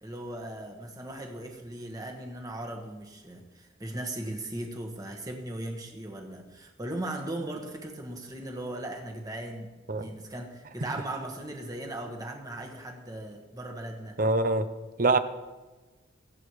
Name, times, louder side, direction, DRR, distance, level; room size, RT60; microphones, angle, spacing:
voice 1, 0.0-14.2, right 1 dB, 20° right, 2 dB, 1.5 m, -38 dB
voice 2, 14.2-14.7 15.0-15.2, right 2 dB, 45° right, 10 dB, 0.7 m, -23 dB
24.0 x 8.3 x 3.2 m, 1.2 s
head